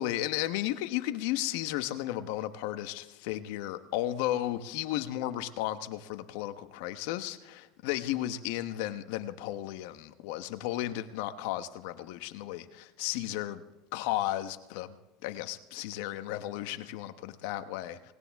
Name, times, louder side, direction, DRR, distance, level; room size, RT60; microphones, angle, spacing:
voice 1, 0.0-13.6 13.9-15.0 15.2-18.1, left 14 dB, 75° left, 1.0 m, -34 dB
18.5 x 18.0 x 3.6 m
supercardioid pair, 85°, 0 cm